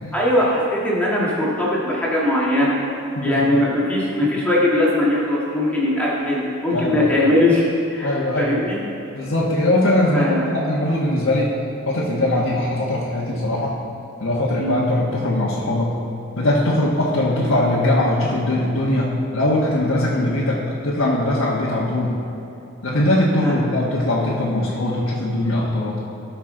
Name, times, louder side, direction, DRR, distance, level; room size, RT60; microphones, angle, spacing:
voice 1, 0.1-2.8 3.2-8.8 10.1-10.4 14.6-14.8 23.4-23.6, left 1 dB, 5° left, -6 dB, 1.6 m, -20 dB
voice 2, 3.1-3.7 6.7-7.1 8.0-8.6 9.1-11.5 11.9-13.8 14.2-15.9 16.4-22.2 22.8-26.0, left 1 dB, 75° left, -6 dB, 1.3 m, -21 dB
17.0 x 5.9 x 3.8 m, 3.0 s
head